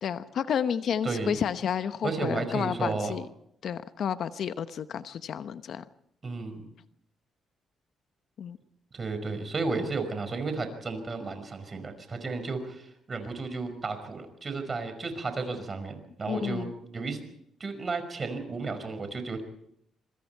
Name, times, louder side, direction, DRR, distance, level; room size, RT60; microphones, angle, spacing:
voice 1, 0.0-3.3 3.6-5.8 8.4-8.6 16.3-16.7, left 8 dB, 65° left, 12 dB, 0.9 m, -31 dB
voice 2, 1.0-1.4 2.0-3.2 6.2-6.7 8.9-17.2 17.6-19.4, right 3 dB, 35° right, 8 dB, 5.4 m, -33 dB
26.0 x 24.0 x 4.6 m, 0.73 s
cardioid pair, 90°, 0 cm